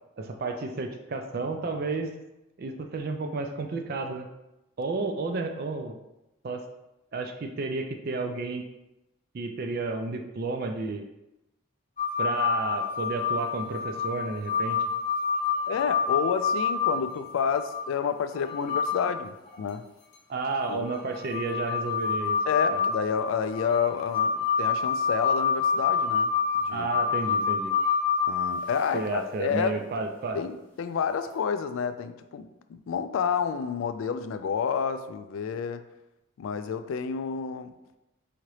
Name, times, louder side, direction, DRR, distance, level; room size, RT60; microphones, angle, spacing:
voice 1, 0.2-2.1 2.6-4.3 4.8-6.0 6.4-6.6 7.1-8.6 9.3-11.0 12.2-14.8 20.3-22.4 22.7-22.8 26.7-27.7 28.9-30.4, right 3 dB, 45° right, 5 dB, 0.4 m, -31 dB
sound 1, 12.0-17.8 18.4-19.2 19.5-19.6 20.7-29.1 31.2-31.3, left 6 dB, 35° left, 0.7 m, -27 dB
voice 2, 15.7-19.8 20.7-20.9 22.5-26.3 26.6-26.9 28.3-29.9 30.3-35.8 36.4-37.7, left 6 dB, 70° left, 10 dB, 0.3 m, -29 dB
4.8 x 2.8 x 3.1 m, 0.93 s
head